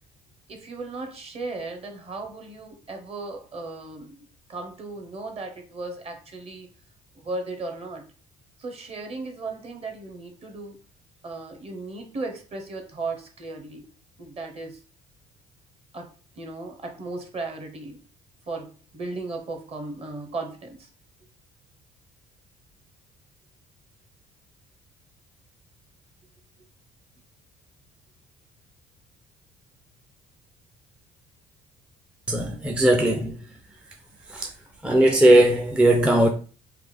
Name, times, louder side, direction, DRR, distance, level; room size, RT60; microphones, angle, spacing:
voice 1, 0.5-4.2 4.5-6.7 7.1-8.1 8.6-10.8 11.2-13.9 14.2-14.8 15.9-18.0 18.5-20.9, right 3 dB, 35° right, 0.8 m, -36 dB
voice 2, 32.3-33.6 34.3-34.5 34.8-36.3, right 1 dB, 5° right, 0.4 m, -19 dB
3.4 x 2.0 x 3.2 m
cardioid pair, 110°, 17 cm